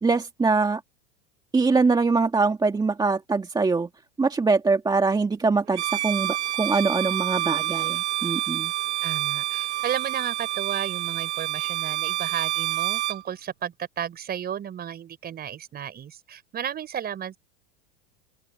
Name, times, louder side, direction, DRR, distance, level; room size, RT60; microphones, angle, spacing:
voice 1, 0.0-0.8 1.5-3.9 4.2-8.7, right 4 dB, 10° right, 2.2 m, -23 dB
Bowed string instrument, 5.7-13.2, right 14 dB, 85° right, 1.5 m, -28 dB
voice 2, 9.0-17.4, right 9 dB, 30° right, 5.3 m, -33 dB
open air
supercardioid pair, 120°, 33 cm